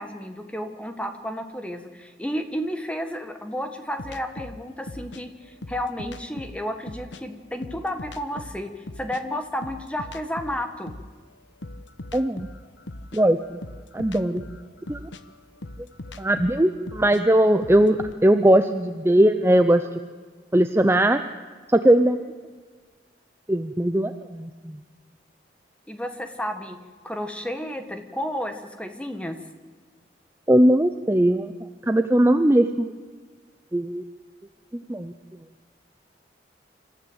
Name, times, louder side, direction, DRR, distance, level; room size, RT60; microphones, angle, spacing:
voice 1, 0.0-10.9 25.9-26.8 27.0-29.4, equal, 5° left, 7 dB, 1.5 m, -32 dB
sound 1, 4.0-7.2 7.6-11.2 11.6-18.1, left 1 dB, 90° left, 1.1 m, -40 dB
voice 2, 12.1-12.5 13.1-13.4 13.9-14.4 14.9-15.1 16.2-19.8 20.5-21.2 21.7-22.2 23.5-24.8 30.5-31.5 31.8-32.9 33.7-34.0 34.7-35.1, right 1 dB, 15° right, 8 dB, 0.6 m, -19 dB
26.5 x 14.5 x 8.0 m, 1.5 s
head